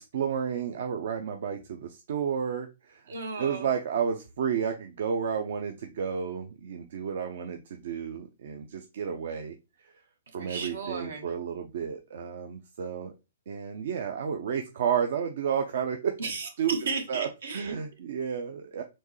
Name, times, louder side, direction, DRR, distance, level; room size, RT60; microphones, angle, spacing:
voice 1, 0.0-3.0 3.4-9.6 9.8-9.9 10.3-13.1 13.5-16.2 16.6-16.7 17.1-18.8, right 7 dB, 65° right, 6 dB, 0.5 m, -31 dB
voice 2, 3.1-3.7 10.4-11.3 16.2-17.7, right 4 dB, 80° right, 6 dB, 1.1 m, -34 dB
4.4 x 3.1 x 3.1 m, 0.26 s
hypercardioid pair, 150°, 0 cm